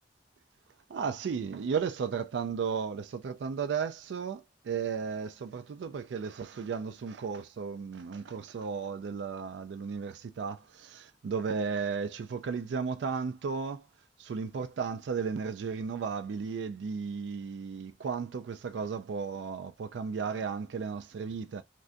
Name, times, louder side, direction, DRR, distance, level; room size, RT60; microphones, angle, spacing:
voice 1, 0.9-13.8 14.2-21.6, right 5 dB, 70° right, 0.3 m, -34 dB
3.3 x 2.5 x 2.5 m
head